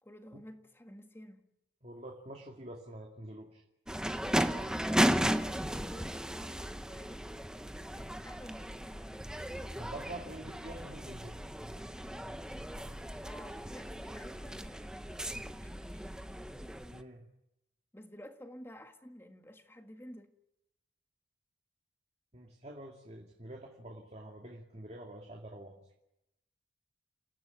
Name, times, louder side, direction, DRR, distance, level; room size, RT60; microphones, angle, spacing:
voice 1, 0.0-1.5 4.4-4.8 5.3-7.3 7.9-9.4 13.2-16.1 17.9-20.3, equal, 15° left, 1.8 m, -51 dB
voice 2, 1.8-3.6 9.8-11.4 16.9-17.2 22.3-25.8, right 1 dB, 35° right, 2.5 m, -46 dB
sound 1, 3.9-17.0, equal, 5° right, 1.0 m, -35 dB
29.5 x 16.0 x 9.7 m
head